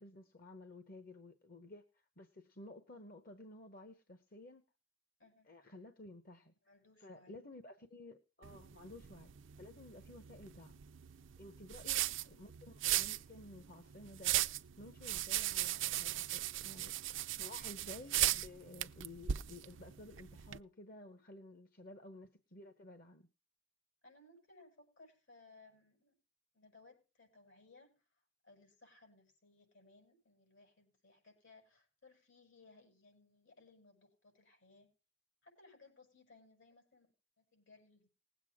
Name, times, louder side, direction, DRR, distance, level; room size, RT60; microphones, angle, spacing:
voice 1, 0.0-1.8 2.2-4.6 5.5-6.5 7.0-9.3 9.6-10.8 11.4-14.5 14.8-16.9 17.4-23.3, left 2 dB, 45° left, 1.0 m, -54 dB
voice 2, 5.2-5.5 6.6-7.3 11.7-11.9 24.0-26.2 26.5-28.0 28.4-34.9 35.4-37.1 37.4-38.1, left 3 dB, 75° left, 6.1 m, -63 dB
sound 1, 8.4-20.6, right 13 dB, 70° right, 0.5 m, -38 dB
19.5 x 8.3 x 3.6 m
head